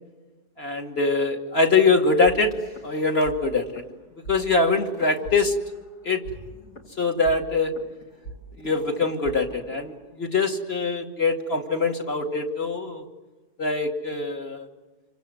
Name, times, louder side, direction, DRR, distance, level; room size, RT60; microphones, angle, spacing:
voice 1, 0.6-2.5 2.8-3.8 4.3-5.6 6.0-6.2 7.0-7.7 8.6-13.0 13.6-14.7, left 3 dB, 40° left, 2 dB, 2.7 m, -23 dB
sound 1, 2.3-3.4 3.6-3.9 4.2-4.4 4.9-5.9 6.2-10.3, right 2 dB, 80° left, 3.5 m, -42 dB
27.5 x 25.5 x 7.8 m, 1.2 s
omnidirectional pair, 1.6 m